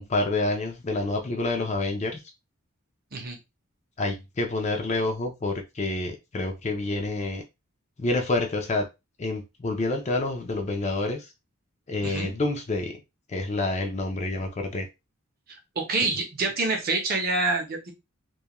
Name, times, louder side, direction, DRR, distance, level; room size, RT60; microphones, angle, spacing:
voice 1, 0.0-2.2 4.0-7.4 8.0-8.9 9.2-11.3 11.9-13.0 13.3-14.9, left 2 dB, 30° left, 4 dB, 0.4 m, -28 dB
voice 2, 15.8-17.9, right 3 dB, 45° right, 3 dB, 0.6 m, -27 dB
2.3 x 2.1 x 2.9 m, 0.24 s
head